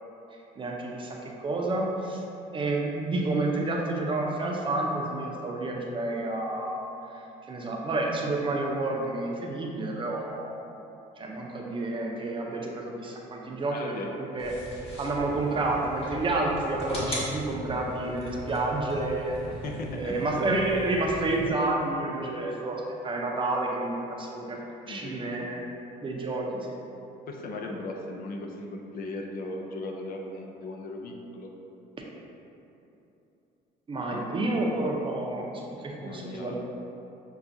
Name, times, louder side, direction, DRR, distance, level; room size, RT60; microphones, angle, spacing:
voice 1, 0.6-2.2 2.5-6.8 7.4-10.5 11.2-14.5 15.0-19.3 20.0-24.6 24.9-25.6 26.0-26.8 33.9-35.5 35.8-36.6, right 2 dB, 30° right, -1 dB, 0.6 m, -29 dB
voice 2, 13.7-14.1 19.6-20.3 20.8-20.9 24.8-25.4 27.3-31.5 34.1-34.3 35.9-36.6, left 2 dB, 60° left, 1 dB, 0.5 m, -38 dB
sound 1, 14.4-21.4, equal, 35° left, 1.2 m, -39 dB
6.9 x 2.4 x 2.6 m, 2.9 s
cardioid pair, 110°, 17 cm